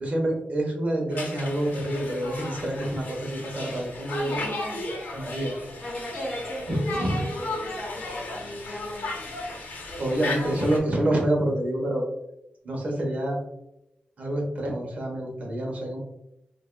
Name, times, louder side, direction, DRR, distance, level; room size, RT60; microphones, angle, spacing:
voice 1, 0.0-4.4 5.1-5.5 6.7-7.3 10.0-12.0 12.6-13.4 14.2-16.0, right 1 dB, 50° right, 0 dB, 1.0 m, -27 dB
Conversation, 1.1-10.8, left 2 dB, 85° left, 1.0 m, -35 dB
voice 2, 4.2-4.9 5.8-9.1 10.3-10.6, equal, 10° left, -1 dB, 0.7 m, -38 dB
5.1 x 2.5 x 2.2 m, 0.83 s
wide cardioid pair, 140°, 3 cm